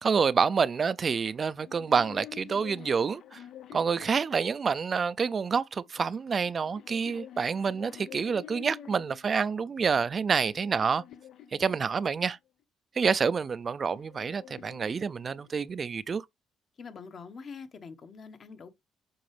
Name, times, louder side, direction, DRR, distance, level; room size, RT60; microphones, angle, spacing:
voice 1, 0.0-3.4 3.7-11.0 11.5-12.4 12.9-16.2, right 5 dB, 40° right, 0.4 m, -28 dB
sound 1, 1.5-4.9 5.9-9.3 9.9-12.3 13.4-15.8, left 10 dB, 70° left, 0.6 m, -49 dB
voice 2, 16.8-18.7, left 5 dB, 50° left, 1.3 m, -44 dB
7.7 x 4.7 x 3.3 m
cardioid pair, 90°, 0 cm